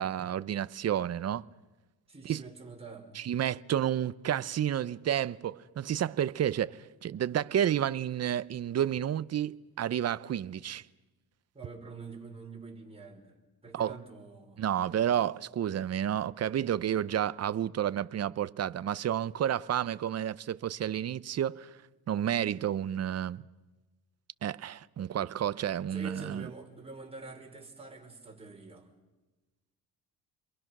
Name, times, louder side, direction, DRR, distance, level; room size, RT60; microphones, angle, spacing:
voice 1, 0.0-1.5 2.2-2.4 3.1-10.9 13.7-14.0 14.6-21.8 22.1-23.4 24.4-26.5, right 10 dB, 40° right, 0.7 m, -30 dB
voice 2, 2.1-3.3 11.5-13.4 13.6-14.7 25.9-28.9, right 3 dB, 15° right, 5.5 m, -46 dB
29.5 x 22.5 x 6.1 m
cardioid pair, 100°, 38 cm